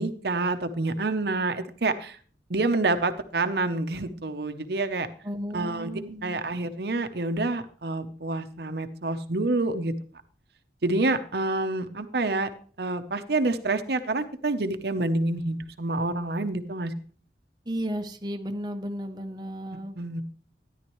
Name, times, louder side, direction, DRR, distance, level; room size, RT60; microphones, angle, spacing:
voice 1, 0.0-2.2 2.5-5.1 5.5-5.9 6.2-9.9 10.8-12.5 12.8-16.9 19.7-20.2, right 2 dB, 60° right, 9 dB, 0.8 m, -27 dB
voice 2, 5.2-6.4 17.7-20.0, equal, 20° right, 3 dB, 0.8 m, -34 dB
13.0 x 10.5 x 3.1 m, 0.42 s
head